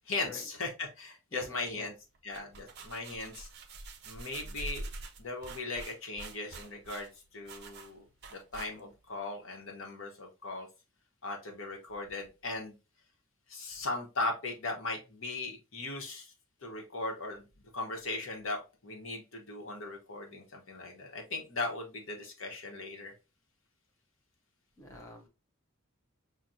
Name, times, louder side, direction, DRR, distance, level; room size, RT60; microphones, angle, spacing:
voice 1, 0.1-1.9 2.2-3.5 4.0-4.9 5.2-8.0 8.3-10.7 11.2-12.8 13.5-16.3 16.6-17.5 17.7-23.1, left 3 dB, 65° left, 1 dB, 1.0 m, -38 dB
voice 2, 1.3-1.9 24.8-25.3, left 3 dB, 15° left, -1 dB, 0.6 m, -46 dB
sound 1, 2.1-9.1, right 2 dB, 50° right, 0.5 m, -45 dB
5.8 x 2.2 x 2.5 m, 0.29 s
head